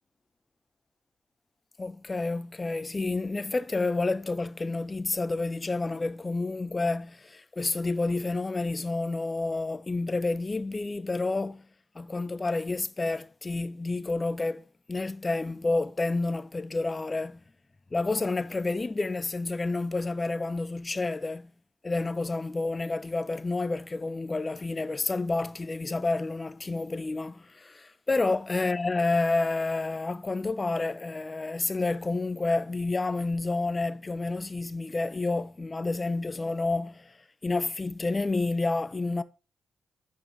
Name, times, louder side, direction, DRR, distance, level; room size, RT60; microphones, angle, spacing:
voice 1, 1.8-11.6 11.9-17.4 17.9-21.5 21.8-37.1 37.4-39.2, left 3 dB, 35° left, 0.8 m, -29 dB
9.6 x 5.2 x 4.0 m
supercardioid pair, 45°, 0 cm